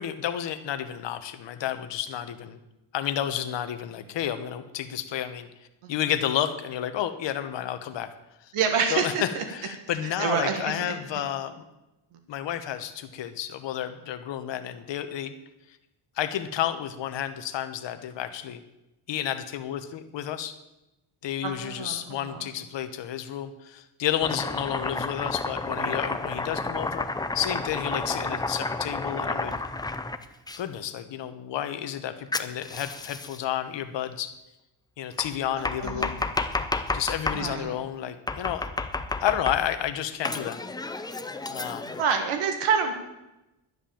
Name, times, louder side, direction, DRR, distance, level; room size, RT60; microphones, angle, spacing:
voice 1, 0.0-2.6 2.9-5.5 5.9-8.1 8.9-9.1 9.5-11.5 12.3-15.3 16.2-18.6 19.1-20.6 21.2-27.1 27.3-29.5 30.6-34.3 35.0-36.2 36.9-38.6 39.2-40.6 41.5-42.0, left 10 dB, 60° left, 9 dB, 1.2 m, -31 dB
voice 2, 8.5-9.4 10.0-11.0 21.4-22.5 35.6-36.1 37.3-37.7 42.0-42.9, right 6 dB, 85° right, 5 dB, 1.8 m, -27 dB
Domestic sounds home sounds, 24.2-30.6 32.3-33.4 35.2-37.5 38.3-39.8 40.2-42.0, left 3 dB, 10° left, 0.5 m, -31 dB
11.0 x 10.5 x 7.1 m, 0.95 s
cardioid pair, 150°, 49 cm